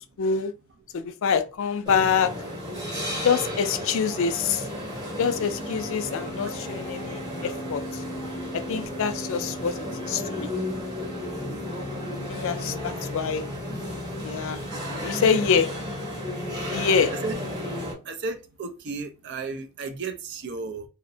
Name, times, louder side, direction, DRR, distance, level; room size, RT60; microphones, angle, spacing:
voice 1, 0.2-0.5 0.9-2.3 3.2-4.7 5.2-8.0 8.5-10.5 12.3-13.4 14.2-14.6 15.0-15.7 16.7-17.1, left 6 dB, 60° left, 0.4 m, -25 dB
sound 1, 1.8-17.9, left 1 dB, 20° right, 0.9 m, -33 dB
voice 2, 18.0-20.9, right 4 dB, 55° right, 0.5 m, -34 dB
2.7 x 2.1 x 2.6 m
head